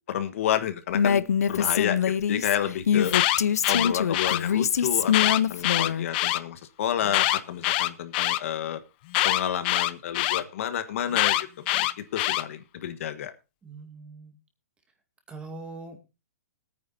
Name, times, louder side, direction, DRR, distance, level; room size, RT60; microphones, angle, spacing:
voice 1, 0.1-3.1 3.7-8.8 9.2-13.3, left 10 dB, 60° left, 10 dB, 1.4 m, -30 dB
Female speech woman speaking, 0.9-6.1, left 8 dB, 80° left, 0.7 m, -24 dB
Alarm, 2.9-4.4 5.1-6.4 7.1-8.4 9.1-10.4 11.1-12.4, left 16 dB, 40° left, 0.7 m, -24 dB
voice 2, 13.6-14.3 15.3-16.0, right 3 dB, 10° right, 5 dB, 2.3 m, -41 dB
20.5 x 9.4 x 2.7 m, 0.28 s
hypercardioid pair, 145°, 8 cm